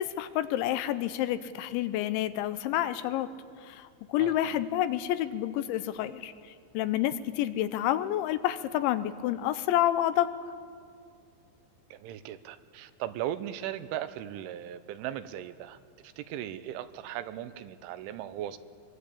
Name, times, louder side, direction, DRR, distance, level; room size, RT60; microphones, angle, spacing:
voice 1, 0.0-3.3 3.6-6.3 6.7-10.3, left 12 dB, 80° left, 12 dB, 3.1 m, -29 dB
voice 2, 4.2-4.7 11.9-15.8 16.0-18.6, right 11 dB, 90° right, 12 dB, 3.4 m, -38 dB
23.5 x 23.0 x 8.6 m, 2.3 s
omnidirectional pair, 5.4 m